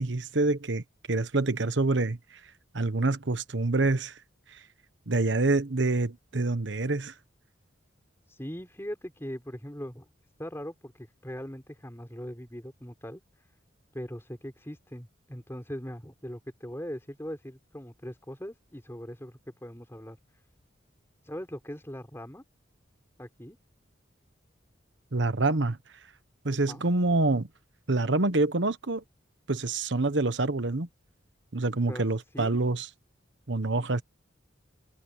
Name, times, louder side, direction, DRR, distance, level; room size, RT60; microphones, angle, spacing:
voice 1, 0.0-2.2 2.7-4.1 4.5-4.6 5.1-7.1 25.1-25.8 26.4-27.5 27.9-29.0 29.5-30.9 31.5-32.9 33.5-34.0, right 2 dB, 65° right, 1.1 m, -26 dB
voice 2, 8.3-10.1 10.4-13.5 13.9-20.4 21.2-22.4 23.2-23.6 26.7-26.8 31.9-32.6, equal, 15° left, 4.2 m, -40 dB
head